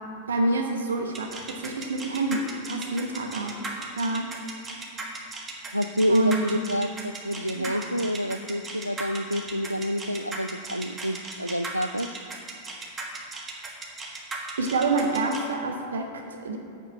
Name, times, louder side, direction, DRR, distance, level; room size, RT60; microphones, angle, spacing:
voice 1, 0.3-3.7 4.0-4.3 6.1-6.5 7.5-7.8 14.6-16.6, right 2 dB, 70° right, 3 dB, 0.9 m, -27 dB
sound 1, 1.1-15.4, right 3 dB, 20° right, 1.5 m, -36 dB
voice 2, 5.7-12.1, equal, 90° right, 12 dB, 0.3 m, -28 dB
7.0 x 5.9 x 7.5 m, 2.7 s
figure-of-eight pair, 90°, 0 cm